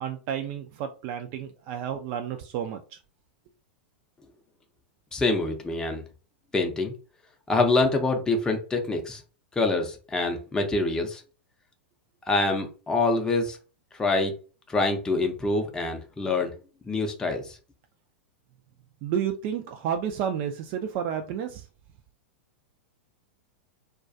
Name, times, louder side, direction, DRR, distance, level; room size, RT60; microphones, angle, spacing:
voice 1, 0.0-3.0 19.0-21.7, right 8 dB, 45° right, 5 dB, 0.3 m, -31 dB
voice 2, 5.1-6.0 6.5-6.9 7.5-9.2 9.6-11.2 12.3-13.6 14.0-14.3 14.7-16.5 16.9-17.6, left 3 dB, 10° left, 3 dB, 0.5 m, -25 dB
2.2 x 2.2 x 2.5 m, 0.35 s
hypercardioid pair, 100°, 6 cm